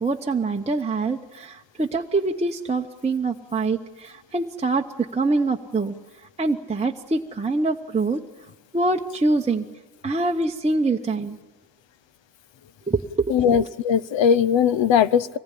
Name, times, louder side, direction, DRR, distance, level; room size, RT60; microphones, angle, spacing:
voice 1, 0.0-4.8 5.1-5.9 6.4-8.2 8.7-9.6 10.0-11.3 12.9-13.3 13.6-13.7, right 3 dB, 15° right, 1 dB, 0.9 m, -24 dB
voice 2, 13.3-15.4, left 8 dB, 80° left, 17 dB, 0.9 m, -19 dB
24.5 x 19.0 x 10.0 m, 1.3 s
wide cardioid pair, 130°, 44 cm